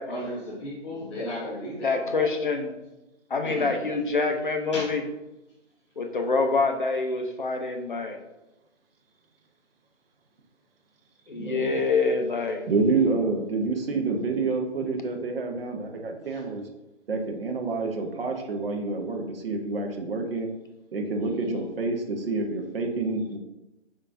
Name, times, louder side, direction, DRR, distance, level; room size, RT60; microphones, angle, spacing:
voice 1, 0.1-2.3 3.4-3.8 4.7-4.9 16.3-16.4 21.4-21.6, equal, 25° left, -11 dB, 0.9 m, -35 dB
voice 2, 1.8-2.8 3.3-5.0 6.0-8.2 11.3-12.7, left 4 dB, 45° left, 5 dB, 0.5 m, -26 dB
voice 3, 11.3-11.8 12.7-16.6 17.1-20.5 20.9-23.4, right 3 dB, 50° right, 3 dB, 0.7 m, -28 dB
5.5 x 3.5 x 2.5 m, 0.98 s
hypercardioid pair, 165°, 36 cm